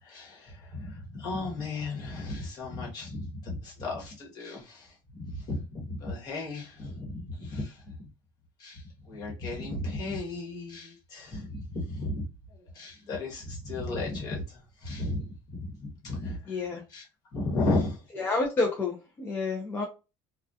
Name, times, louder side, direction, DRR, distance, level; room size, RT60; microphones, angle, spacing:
voice 1, 0.0-8.1 8.6-12.3 12.7-16.6 16.9-17.0 17.3-18.0, left 2 dB, 35° left, 1.1 m, -34 dB
voice 2, 16.5-16.8 18.2-19.8, left 3 dB, 15° left, 0.4 m, -29 dB
2.3 x 2.1 x 2.6 m
cardioid pair, 160°, 11 cm